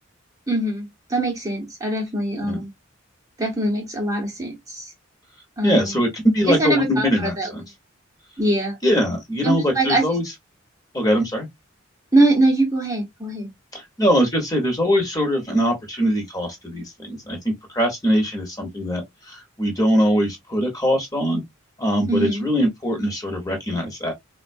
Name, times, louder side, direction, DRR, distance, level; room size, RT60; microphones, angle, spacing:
voice 1, 0.5-2.7 3.4-4.9 5.6-6.0 6.5-7.5 8.4-8.8 9.4-10.1 12.1-13.5 22.1-22.5, right 2 dB, 15° right, 0.8 m, -22 dB
voice 2, 5.6-7.6 8.8-10.2 10.9-11.5 13.7-17.4 17.7-21.4 21.8-24.1, equal, 20° left, 1.0 m, -22 dB
3.7 x 2.2 x 2.5 m
head